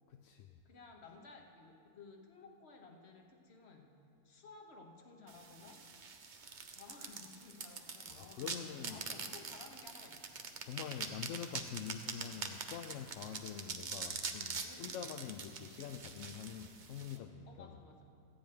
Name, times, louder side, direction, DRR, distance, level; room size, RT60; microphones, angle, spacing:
voice 1, 0.1-0.6 8.1-9.0 10.6-17.7, left 8 dB, 65° left, 5 dB, 0.8 m, -45 dB
voice 2, 0.6-4.0 4.2-5.8 6.7-10.4 14.6-15.0 17.1-18.0, left 3 dB, 45° left, 2 dB, 1.3 m, -56 dB
sound 1, 5.3-17.2, right 5 dB, 45° right, 0.7 m, -44 dB
14.0 x 5.2 x 9.3 m, 2.4 s
omnidirectional pair, 1.6 m